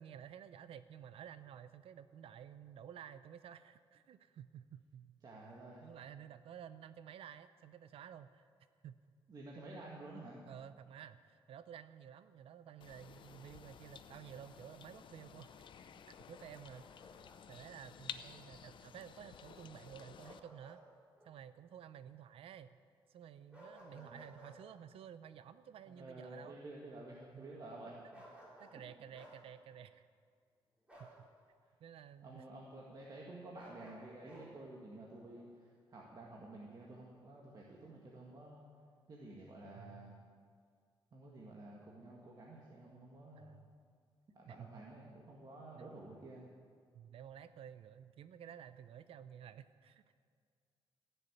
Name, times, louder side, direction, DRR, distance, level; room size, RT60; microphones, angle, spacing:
voice 1, 0.0-5.2 5.8-8.5 8.8-9.0 10.5-16.9 17.5-20.8 21.2-22.8 23.1-26.6 27.3-27.5 28.0-28.2 28.6-30.1 31.0-31.3 31.8-32.5 39.7-40.2 43.3-43.7 44.5-44.8 45.7-45.9 46.9-50.2, right 9 dB, 80° right, 13 dB, 0.5 m, -53 dB
voice 2, 5.2-5.8 9.3-10.4 23.9-24.2 25.9-28.0 32.2-38.6 39.1-40.2 41.1-43.5 44.3-46.5, right 2 dB, 40° right, -3 dB, 1.8 m, -51 dB
sound 1, 12.8-20.4, left 8 dB, 60° left, 0.6 m, -53 dB
Bark, 16.3-17.4 20.2-20.8 21.2-21.3 23.5-24.6 28.1-28.8 29.1-29.4 30.9-31.2 33.5-34.5, right 1 dB, 10° right, 3.6 m, -57 dB
16.0 x 6.9 x 9.0 m, 2.1 s
wide cardioid pair, 150°, 10 cm